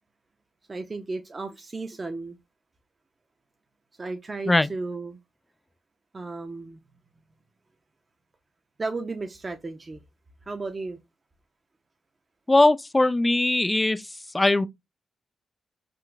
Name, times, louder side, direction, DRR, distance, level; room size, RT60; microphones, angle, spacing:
voice 1, 0.7-2.4 4.0-5.2 6.1-6.8 8.8-10.0 10.4-11.0, right 3 dB, 35° right, 0.5 m, -34 dB
voice 2, 12.5-14.0 14.3-14.7, left 2 dB, 20° left, 0.3 m, -20 dB
3.7 x 2.5 x 2.2 m
supercardioid pair, 50°, 0 cm